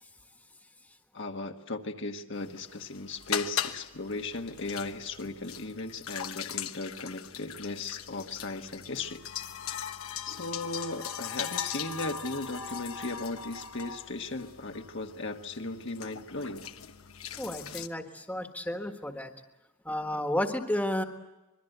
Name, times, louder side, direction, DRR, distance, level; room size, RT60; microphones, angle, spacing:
voice 1, 1.1-9.2 10.2-16.6 17.7-17.8, left 2 dB, 55° left, 4 dB, 1.4 m, -37 dB
sound 1, 2.4-17.9, left 8 dB, 75° left, 1.1 m, -39 dB
voice 2, 17.4-19.3 19.8-21.0, left 1 dB, 5° left, 5 dB, 1.5 m, -32 dB
25.5 x 22.5 x 8.0 m, 1.0 s
head